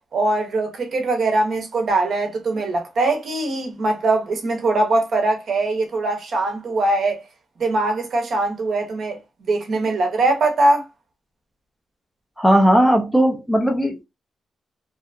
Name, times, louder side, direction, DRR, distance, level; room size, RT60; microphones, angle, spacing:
voice 1, 0.1-7.2 7.6-9.2 9.5-10.8, right 2 dB, 50° right, 0.7 m, -21 dB
voice 2, 12.4-14.0, equal, 5° left, 0.4 m, -17 dB
2.7 x 2.2 x 2.4 m
wide cardioid pair, 155°, 0 cm